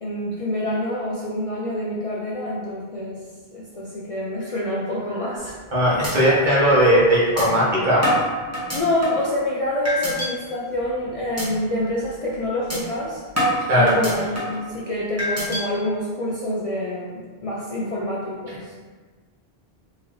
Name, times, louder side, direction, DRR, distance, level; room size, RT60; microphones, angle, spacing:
voice 1, 0.0-3.2 3.5-5.6 8.7-13.2 13.7-18.6, left 1 dB, 45° left, -6 dB, 0.5 m, -27 dB
sound 1, 5.4-5.7 6.0-6.1 6.5-6.6 7.4-7.5 8.0-9.3 9.8-10.3 10.7-10.9 11.4-11.5 11.9-12.1 12.7-12.8 13.4-14.6 15.2-15.6, equal, 15° right, 1.0 m, -25 dB
voice 2, 5.7-8.1 13.7-13.9, equal, 50° right, -7 dB, 1.2 m, -17 dB
3.8 x 2.9 x 3.1 m, 1.4 s
omnidirectional pair, 1.0 m